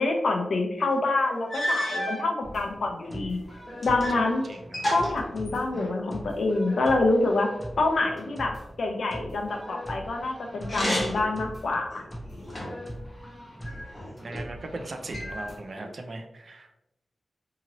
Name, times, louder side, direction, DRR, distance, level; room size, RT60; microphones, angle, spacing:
voice 1, 0.0-3.4 3.8-4.5 4.9-7.5 7.8-12.0, left 2 dB, 75° left, 3 dB, 0.5 m, -26 dB
sound 1, 0.9-1.0 1.5-2.3 3.0-4.2 4.5-6.0 10.6-11.4 11.9-12.9 13.6-14.4 15.1-15.9, equal, 30° left, 1.0 m, -31 dB
sound 2, 2.4-15.6, equal, 5° left, 0.9 m, -42 dB
voice 2, 4.1-4.8 14.2-16.7, right 2 dB, 50° right, 5 dB, 0.4 m, -39 dB
2.8 x 2.6 x 2.9 m, 0.86 s
wide cardioid pair, 125°, 0 cm